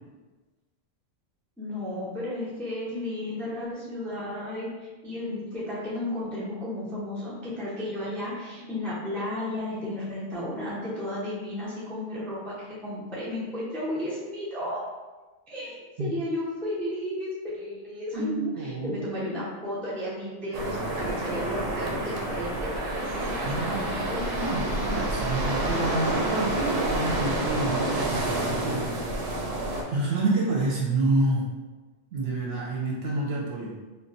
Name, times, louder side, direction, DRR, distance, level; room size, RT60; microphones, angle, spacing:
voice 1, 1.6-4.7 5.0-14.8 15.5-24.2, left 1 dB, ahead, -7 dB, 0.3 m, -33 dB
voice 2, 18.1-19.0 23.4-23.8 24.4-29.4 29.9-31.5 32.1-33.7, right 2 dB, 60° right, -4 dB, 0.8 m, -28 dB
sound 1, 20.5-29.8, right 1 dB, 85° right, 1.0 m, -29 dB
2.5 x 2.1 x 3.9 m, 1.3 s
omnidirectional pair, 1.3 m